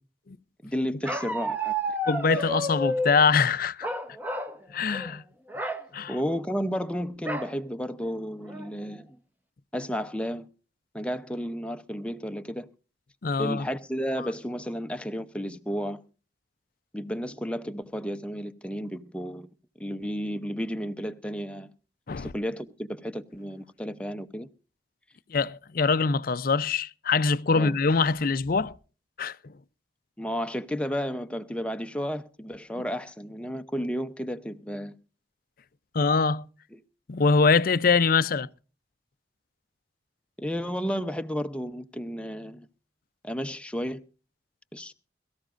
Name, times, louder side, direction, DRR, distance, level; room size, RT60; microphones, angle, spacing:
voice 1, 0.6-2.0 4.8-5.0 6.1-9.1 9.7-10.5 10.9-12.7 13.4-16.0 16.9-19.5 19.8-21.7 22.2-24.5 27.5-27.8 30.2-34.9 36.7-36.8 40.4-42.7 43.2-44.0 44.7-44.9, equal, 5° left, 0.7 m, -32 dB
Bark, 1.1-3.2 3.8-4.6 4.9-5.1 5.5-5.8 7.3-7.5 8.1-8.2 8.5-8.9, right 1 dB, 10° right, 1.1 m, -30 dB
voice 2, 2.1-3.9 4.7-5.2 5.9-6.1 13.2-13.7 22.1-22.3 25.3-28.8 29.2-29.4 35.9-36.4 37.1-38.5, left 4 dB, 55° left, 0.5 m, -23 dB
22.5 x 14.0 x 2.5 m
head